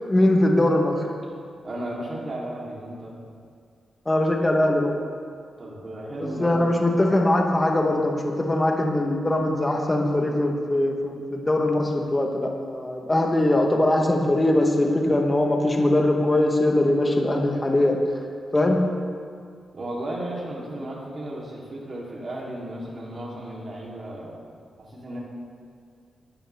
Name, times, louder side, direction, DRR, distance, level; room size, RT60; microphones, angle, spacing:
voice 1, 0.1-1.0 4.0-5.0 6.2-18.0 18.5-18.8, left 1 dB, 15° left, 1 dB, 1.2 m, -21 dB
voice 2, 1.6-3.2 5.6-6.7 6.9-7.0 19.7-24.5 24.8-25.2, right 1 dB, 35° right, -4 dB, 3.3 m, -34 dB
18.5 x 13.5 x 3.5 m, 2.1 s
wide cardioid pair, 155°, 0 cm